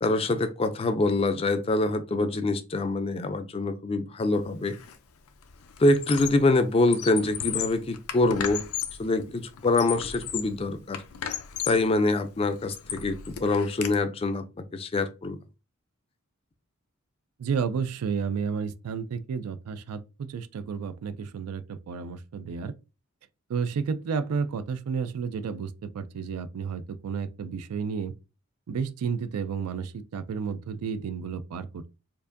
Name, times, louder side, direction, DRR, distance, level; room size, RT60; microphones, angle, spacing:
voice 1, 0.0-4.8 5.8-8.6 9.0-11.0 11.7-14.4 14.7-15.4, left 2 dB, 25° left, 0.3 m, -25 dB
Squeak, 4.7-5.0 5.3-6.5 6.8-9.1 9.6-10.6 10.9-11.9 12.4-13.9, left 9 dB, 80° left, 0.5 m, -35 dB
voice 2, 17.4-22.7 23.5-28.1 28.7-31.9, right 6 dB, 85° right, 0.4 m, -31 dB
4.5 x 2.5 x 2.5 m
head